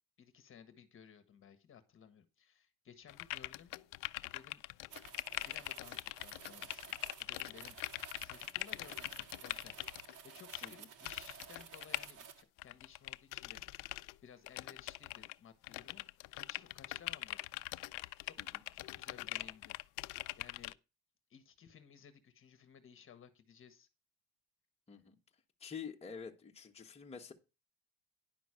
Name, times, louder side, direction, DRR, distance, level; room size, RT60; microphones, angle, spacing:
voice 1, 0.2-3.7 4.2-4.6 5.4-7.8 8.2-16.0 16.3-17.4 17.9-18.4 18.7-20.1 20.4-20.7 21.3-23.9, left 7 dB, 40° left, 9 dB, 1.4 m, -58 dB
sound 1, 3.1-10.2 10.5-10.7 11.0-12.1 12.6-14.1 14.5-15.3 15.6-20.7, left 20 dB, 85° left, 0.5 m, -42 dB
sound 2, 4.9-12.4, right 7 dB, 70° right, 1.7 m, -54 dB
voice 2, 25.6-27.3, left 6 dB, 20° left, 1 dB, 1.4 m, -47 dB
10.5 x 6.1 x 4.9 m, 0.28 s
cardioid pair, 130°, 32 cm